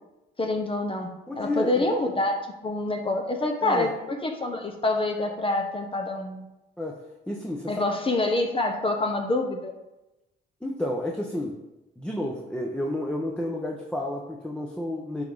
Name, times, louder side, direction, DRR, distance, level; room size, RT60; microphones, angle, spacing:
voice 1, 0.4-1.1 1.4-2.3 2.6-6.5 7.7-9.7, left 2 dB, 25° left, 3 dB, 1.0 m, -26 dB
voice 2, 1.3-1.9 3.6-3.9 6.8-7.0 7.3-7.8 10.6-11.6 12.0-15.2, left 1 dB, 5° left, -1 dB, 0.9 m, -31 dB
10.5 x 3.6 x 4.0 m, 0.96 s
cardioid pair, 90°, 20 cm